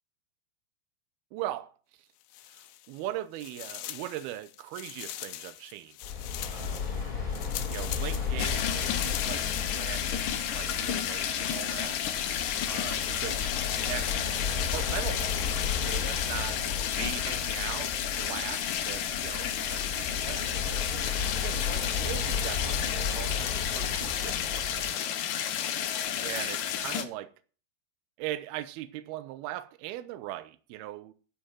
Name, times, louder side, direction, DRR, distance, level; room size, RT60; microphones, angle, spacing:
voice 1, 1.3-1.7 2.5-6.0 6.4-6.9 7.7-12.0 12.7-13.5 13.9-14.2 14.5-15.4 15.7-16.6 16.9-25.0 26.2-27.3 28.2-31.1, right 14 dB, 75° right, 2.5 m, -40 dB
sound 1, 2.2-3.1 3.4-10.0, left 15 dB, 85° left, 3.0 m, -42 dB
sound 2, 6.0-24.9, left 6 dB, 30° left, 5.4 m, -35 dB
sound 3, 8.4-27.0, left 9 dB, 70° left, 2.2 m, -31 dB
11.5 x 5.4 x 7.4 m
omnidirectional pair, 5.0 m